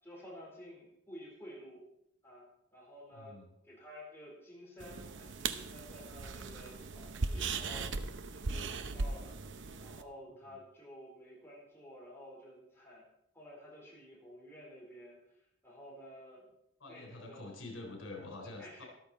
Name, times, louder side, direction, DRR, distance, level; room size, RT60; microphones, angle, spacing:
voice 1, 0.0-1.9 2.2-3.4 3.6-9.4 9.8-13.0 13.3-15.2 15.6-16.4 16.9-17.5 18.4-18.8, equal, 10° left, -4 dB, 4.4 m, -52 dB
voice 2, 3.1-3.5 16.8-18.8, left 2 dB, 85° left, 1 dB, 3.8 m, -46 dB
sound 1, 4.8-10.0, right 4 dB, 65° right, 0.8 m, -38 dB
13.5 x 12.5 x 4.4 m, 0.79 s
head